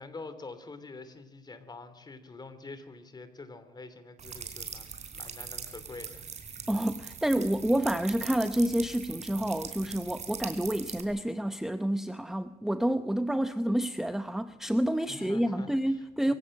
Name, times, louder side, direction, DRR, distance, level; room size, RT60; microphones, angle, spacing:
voice 1, 0.0-6.2 15.1-16.3, left 3 dB, 25° left, 11 dB, 3.1 m, -46 dB
sound 1, 4.2-11.0, right 6 dB, 45° right, 4.2 m, -41 dB
voice 2, 6.7-16.3, right 1 dB, ahead, 11 dB, 0.8 m, -29 dB
24.0 x 16.5 x 7.8 m, 0.93 s
cardioid pair, 110°, 17 cm